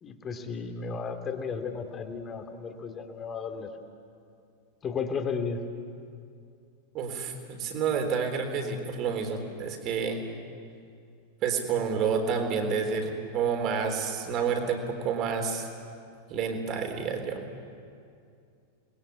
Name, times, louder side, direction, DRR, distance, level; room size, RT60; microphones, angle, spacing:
voice 1, 0.0-3.7 4.8-5.6, left 5 dB, 25° left, 5 dB, 2.7 m, -34 dB
voice 2, 6.9-10.2 11.4-15.7 16.3-17.4, right 6 dB, 35° right, 5 dB, 3.9 m, -29 dB
30.0 x 21.0 x 8.5 m, 2.4 s
figure-of-eight pair, 90°, 0 cm